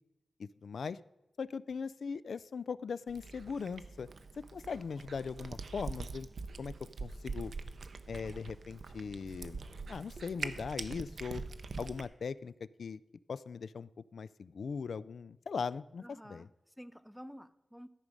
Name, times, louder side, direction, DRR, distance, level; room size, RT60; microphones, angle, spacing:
voice 1, 0.4-1.0 1.4-4.1 4.5-6.3 6.6-6.7 7.0-7.5 8.1-9.6 9.9-11.4 11.8-12.5 12.8-13.0 13.3-16.5, left 5 dB, 75° left, 17 dB, 0.3 m, -39 dB
Cat, 3.1-12.1, right 4 dB, 65° right, 0.6 m, -44 dB
voice 2, 16.0-17.9, equal, ahead, 15 dB, 0.4 m, -51 dB
13.0 x 5.3 x 6.2 m, 1.0 s
wide cardioid pair, 145°, 0 cm